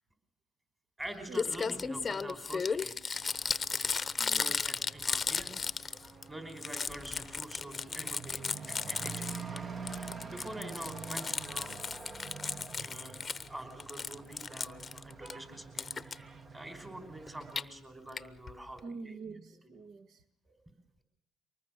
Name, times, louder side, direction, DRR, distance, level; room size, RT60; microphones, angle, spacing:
Crumpling crinkling, 1.0-1.1 1.3-6.2 6.5-9.6 9.9-13.5 13.8-15.3 15.8-16.1 17.3-17.6 18.2-18.3 18.5-18.6 18.8-18.9, left 5 dB, 30° left, 0.9 m, -35 dB
voice 1, 1.0-3.0 4.3-5.8 6.3-11.8 12.7-19.2 20.4-20.5, right 1 dB, 15° right, 8 dB, 5.0 m, -46 dB
Truck / Accelerating revving vroom, 3.1-17.6, right 5 dB, 35° right, 1.3 m, -47 dB
voice 2, 4.2-4.6 18.8-20.2, right 4 dB, 60° right, 10 dB, 1.7 m, -46 dB
24.0 x 20.0 x 6.6 m, 0.68 s
cardioid pair, 95°, 0 cm